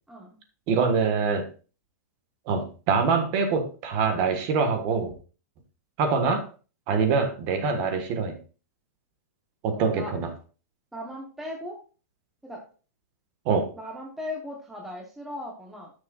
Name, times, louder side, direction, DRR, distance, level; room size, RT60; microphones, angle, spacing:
voice 1, 0.7-1.5 2.5-5.1 6.0-6.5 6.9-8.4 9.6-10.3 13.4-13.7, right 5 dB, 35° right, 6 dB, 1.5 m, -24 dB
voice 2, 9.7-10.1 10.9-11.8 12.4-12.6 13.7-15.9, left 1 dB, 5° right, -1 dB, 1.0 m, -37 dB
13.5 x 6.4 x 2.4 m, 0.36 s
supercardioid pair, 165°, 9 cm